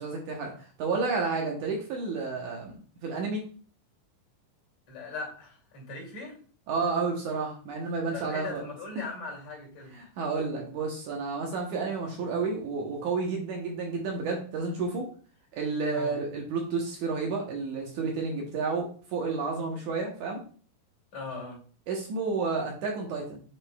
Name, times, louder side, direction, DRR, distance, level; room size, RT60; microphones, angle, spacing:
voice 1, 0.0-3.5 6.7-8.6 9.9-15.1 15.5-20.4 21.9-23.4, right 4 dB, 70° right, 0 dB, 2.2 m, -31 dB
voice 2, 4.9-6.4 8.1-9.9 15.9-16.2 21.1-21.6, left 3 dB, 50° left, -2 dB, 3.5 m, -39 dB
8.6 x 5.2 x 2.3 m, 0.43 s
omnidirectional pair, 4.1 m